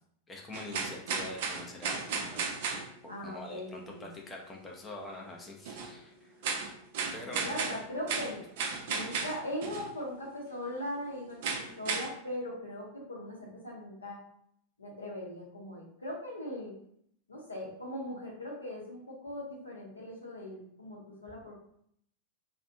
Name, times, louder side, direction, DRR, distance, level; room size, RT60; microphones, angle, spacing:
voice 1, 0.3-2.5 3.0-6.3 7.1-7.5, left 2 dB, 15° left, 0 dB, 0.5 m, -44 dB
sound 1, 0.5-2.9 5.6-5.9 6.4-9.9 11.4-12.1, right 5 dB, 50° right, 0.4 m, -34 dB
voice 2, 3.1-4.1 7.4-8.4 8.9-14.2 14.8-16.7 17.3-21.5, left 1 dB, 80° left, -3 dB, 0.7 m, -40 dB
2.4 x 2.1 x 2.5 m, 0.69 s
figure-of-eight pair, 90°, 0 cm